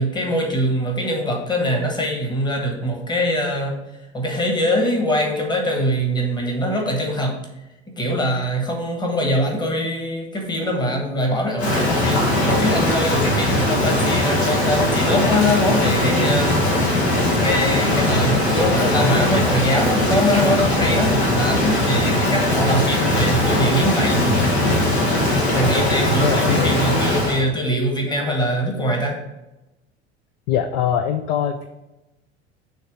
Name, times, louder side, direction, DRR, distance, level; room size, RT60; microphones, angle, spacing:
voice 1, 0.0-3.8 4.1-7.3 7.9-16.6 17.4-24.2 25.5-29.2, equal, 15° left, 1 dB, 1.3 m, -22 dB
Rain, 11.6-27.4, left 1 dB, 75° left, 1.6 m, -20 dB
voice 2, 26.2-26.8 30.5-31.7, left 9 dB, 40° left, 7 dB, 0.5 m, -22 dB
6.4 x 3.1 x 5.1 m, 0.96 s
figure-of-eight pair, 75°, 34 cm